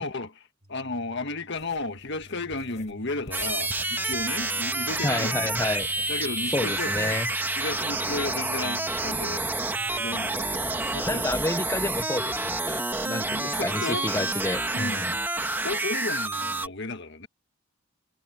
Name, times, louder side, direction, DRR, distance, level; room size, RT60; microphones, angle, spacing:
voice 1, 0.0-5.6 6.1-7.2 7.6-9.6 9.9-11.4 13.0-14.1 14.7-15.2 15.6-17.3, left 3 dB, 55° left, 1.7 m, -34 dB
sound 1, 0.6-12.4, equal, 45° right, 5.9 m, -49 dB
sound 2, 1.5-7.6, left 1 dB, 35° left, 6.3 m, -49 dB
sound 3, 3.3-16.7, right 2 dB, 10° right, 1.4 m, -29 dB
voice 2, 5.0-5.9 6.5-7.3 11.1-15.1, left 2 dB, 15° left, 0.7 m, -30 dB
head